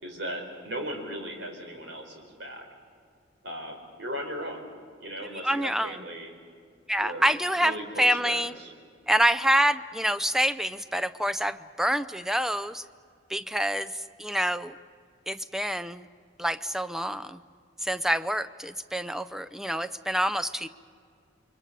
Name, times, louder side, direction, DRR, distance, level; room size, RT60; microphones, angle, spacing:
voice 1, 0.0-2.7 3.4-4.7 5.0-6.3 7.0-7.3 7.6-8.7, equal, 65° right, 3 dB, 4.5 m, -37 dB
voice 2, 5.4-5.9 6.9-8.5 9.1-12.8 13.3-13.9 14.2-14.7 15.3-16.1 16.4-17.4 17.8-20.7, equal, ahead, 13 dB, 0.6 m, -27 dB
29.0 x 23.5 x 6.8 m, 2.3 s
head